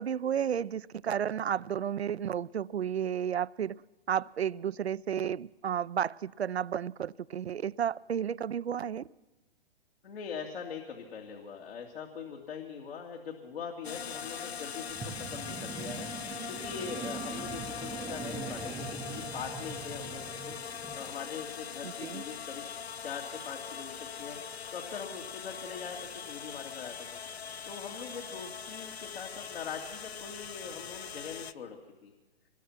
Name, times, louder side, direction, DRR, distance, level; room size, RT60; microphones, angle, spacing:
voice 1, 0.0-3.8 4.1-9.0 21.8-22.2, right 9 dB, 90° right, 17 dB, 0.6 m, -32 dB
voice 2, 10.0-22.7 23.0-24.4 24.7-26.0 26.3-27.2 27.7-32.1, left 6 dB, 70° left, 1 dB, 2.9 m, -42 dB
sound 1, 13.8-31.5, left 7 dB, 90° left, 0.8 m, -41 dB
sound 2, 14.9-21.1, right 6 dB, 10° right, 0.6 m, -42 dB
24.5 x 20.0 x 6.0 m, 1.2 s
hypercardioid pair, 130°, 31 cm